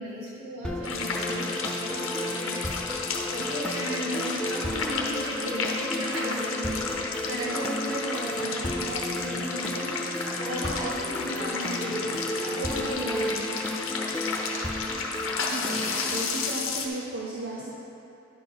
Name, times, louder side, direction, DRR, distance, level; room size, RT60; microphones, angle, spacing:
voice 1, 0.0-2.6 2.9-3.0 3.3-6.9 7.3-13.4, equal, 75° right, -6 dB, 2.0 m, -35 dB
sound 1, 0.6-16.6, equal, 5° left, 0.4 m, -34 dB
sound 2, 0.8-16.9, left 4 dB, 75° left, 0.9 m, -32 dB
voice 2, 15.5-17.7, right 2 dB, 50° right, -4 dB, 0.7 m, -34 dB
10.5 x 5.8 x 4.2 m, 2.7 s
head